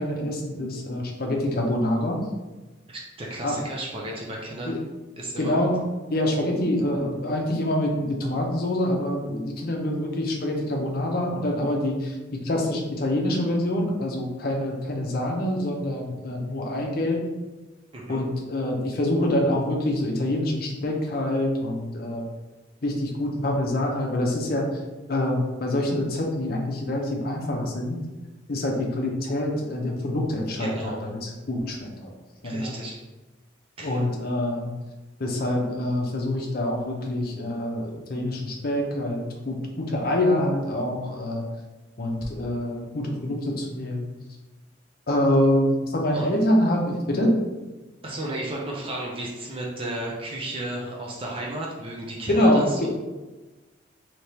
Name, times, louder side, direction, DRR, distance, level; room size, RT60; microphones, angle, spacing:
voice 1, 0.0-2.3 3.4-3.6 4.7-4.8 5.4-5.8 6.1-12.2 12.4-17.2 18.1-22.2 22.8-24.7 25.1-28.0 28.5-32.1 32.4-32.8 33.8-34.7 35.2-41.5 42.0-44.1 45.1-47.4 52.3-52.9, left 1 dB, 50° left, 0 dB, 0.6 m, -25 dB
voice 2, 2.9-4.8 5.2-5.5 17.9-18.2 30.6-31.1 32.4-33.0 33.8-34.0 46.1-46.4 48.0-52.9, right 1 dB, 30° right, -3 dB, 0.5 m, -33 dB
3.4 x 2.9 x 2.8 m, 1.2 s
head